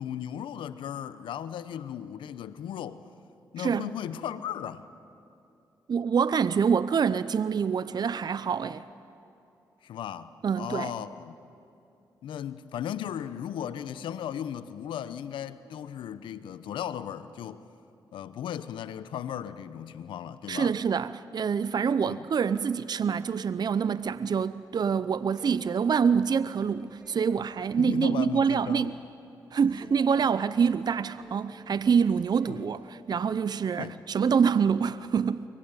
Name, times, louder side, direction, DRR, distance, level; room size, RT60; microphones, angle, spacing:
voice 1, 0.0-3.0 3.5-4.8 9.8-11.3 12.2-17.6 18.1-20.8 22.0-22.3 27.8-29.0 32.5-32.6 33.7-34.0, left 9 dB, 85° left, 0.9 m, -36 dB
voice 2, 5.9-8.8 10.4-10.9 20.5-28.9 29.5-35.5, right 6 dB, 55° right, 0.6 m, -26 dB
sound 1, 25.4-25.9 26.8-27.5 28.4-28.8 29.8-30.3 31.2-31.7 32.4-32.8, right 2 dB, 20° right, 4.5 m, -51 dB
24.0 x 20.0 x 9.1 m
supercardioid pair, 45°, 8 cm